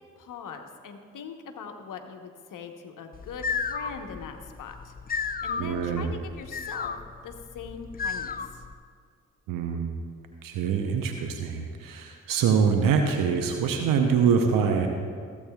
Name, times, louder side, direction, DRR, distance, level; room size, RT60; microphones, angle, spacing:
voice 1, 0.2-4.9 5.4-7.0 7.2-8.6, left 6 dB, 65° left, 5 dB, 1.0 m, -41 dB
sound 1, 3.1-8.7, left 5 dB, 25° left, 0.5 m, -33 dB
voice 2, 5.6-6.1 9.5-10.0 10.4-14.9, right 6 dB, 75° right, 4 dB, 0.8 m, -24 dB
15.0 x 8.4 x 2.3 m, 2.1 s
hypercardioid pair, 40°, 34 cm